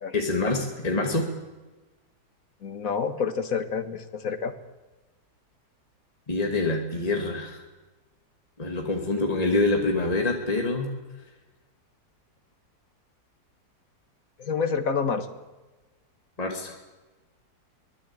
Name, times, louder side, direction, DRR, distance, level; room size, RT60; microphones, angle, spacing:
voice 1, 0.1-1.3 6.3-7.6 8.6-10.9 16.4-16.8, left 2 dB, 25° left, 1 dB, 2.6 m, -26 dB
voice 2, 2.6-4.5 14.4-15.3, left 6 dB, 55° left, 9 dB, 2.0 m, -28 dB
25.0 x 21.0 x 8.9 m, 1.2 s
omnidirectional pair, 1.7 m